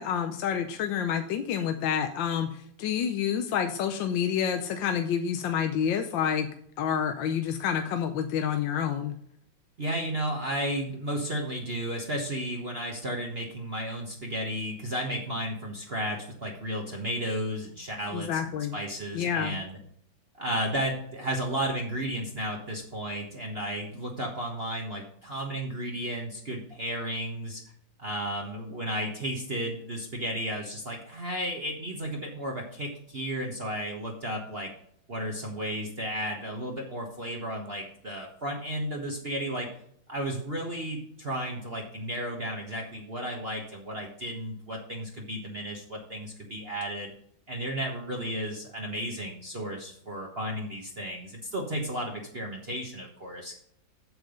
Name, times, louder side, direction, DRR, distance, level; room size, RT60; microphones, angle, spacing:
voice 1, 0.0-2.5 2.8-6.5 6.8-9.1 18.1-18.8 19.1-19.6, left 8 dB, 75° left, 6 dB, 1.4 m, -28 dB
voice 2, 9.8-18.4 18.7-19.8 20.4-27.6 28.0-34.7 35.1-39.7 40.1-47.1 47.5-53.6, right 1 dB, 35° right, 0 dB, 1.2 m, -33 dB
7.9 x 7.4 x 5.0 m, 0.69 s
omnidirectional pair, 2.1 m